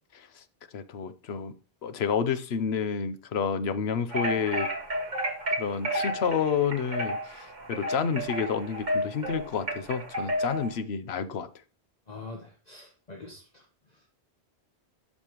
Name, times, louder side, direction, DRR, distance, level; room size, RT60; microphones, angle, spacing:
voice 1, 0.1-0.4 0.7-1.5 1.8-4.7 5.6-11.5, left 6 dB, 75° left, 1.0 m, -29 dB
sound 1, 4.1-10.7, equal, 45° right, 1.9 m, -31 dB
voice 2, 12.1-13.6, left 3 dB, 40° left, 1.3 m, -44 dB
12.5 x 5.4 x 3.0 m
omnidirectional pair, 1.1 m